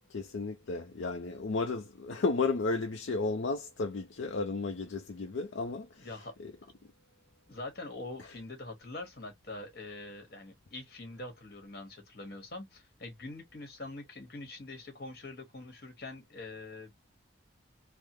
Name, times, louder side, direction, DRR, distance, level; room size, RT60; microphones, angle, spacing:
voice 1, 0.0-6.1 6.4-6.5, left 3 dB, 65° left, 0.5 m, -33 dB
voice 2, 6.0-6.3 7.5-16.9, left 2 dB, 50° left, 1.2 m, -44 dB
3.5 x 2.1 x 3.0 m
head